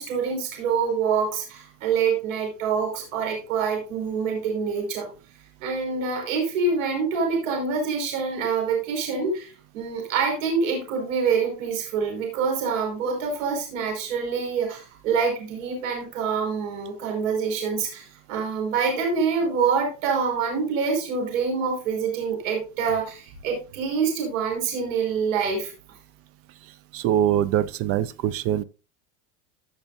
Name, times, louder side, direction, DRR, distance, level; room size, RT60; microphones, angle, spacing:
voice 1, 0.0-5.1 5.6-25.7, right 5 dB, 80° right, 5.4 m, -26 dB
voice 2, 26.9-28.6, right 10 dB, 35° right, 0.5 m, -23 dB
16.0 x 6.8 x 2.7 m
supercardioid pair, 145°, 39 cm